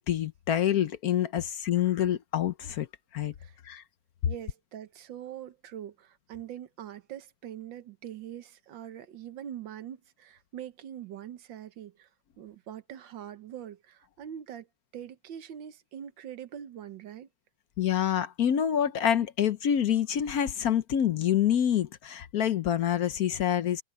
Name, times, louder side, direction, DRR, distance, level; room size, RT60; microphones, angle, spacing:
voice 1, 0.1-2.9 3.1-3.3 3.6-3.8 17.8-23.8, left 10 dB, 60° left, 1.1 m, -27 dB
voice 2, 4.3-12.1 12.4-14.7 14.9-17.3, right 10 dB, 90° right, 1.7 m, -43 dB
omnidirectional pair, 2.0 m